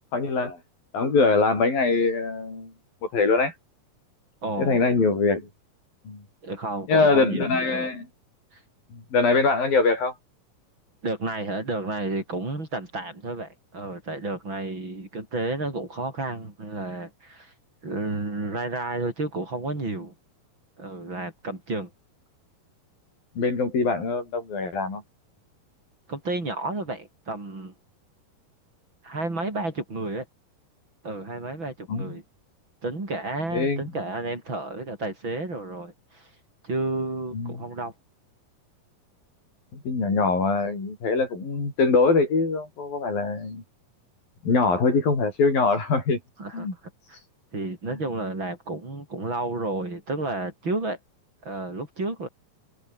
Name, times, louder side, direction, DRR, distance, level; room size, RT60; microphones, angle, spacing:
voice 1, 0.1-0.6 0.9-2.7 3.0-3.5 4.6-5.5 6.1-6.2 6.9-8.1 8.9-10.1 23.4-25.0 31.9-32.1 33.5-33.9 37.3-37.6 39.7-43.6 44.4-46.2 46.5-46.7 47.9-48.0, left 4 dB, 85° left, 9.7 m, -23 dB
voice 2, 4.4-4.9 6.4-7.9 8.5-8.6 11.0-17.5 17.8-20.1 20.8-21.9 26.1-27.7 29.0-30.3 31.0-32.2 32.8-36.3 36.6-37.9 46.4-46.7 47.1-47.2 47.5-51.0 51.4-52.3, right 2 dB, 35° right, 6.6 m, -31 dB
omnidirectional pair, 4.0 m